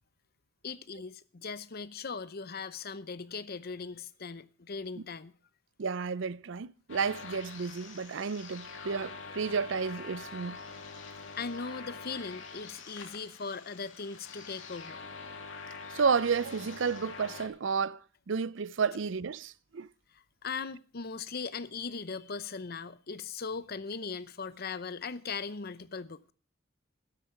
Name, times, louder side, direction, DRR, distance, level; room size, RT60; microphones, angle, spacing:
voice 1, 0.6-5.4 11.4-15.0 20.1-26.3, left 5 dB, 50° left, 0.7 m, -39 dB
voice 2, 5.8-10.6 15.9-18.0 18.3-19.9, right 5 dB, 65° right, 0.5 m, -31 dB
sound 1, 6.9-17.5, left 4 dB, 70° left, 2.6 m, -45 dB
12.5 x 12.5 x 4.5 m
head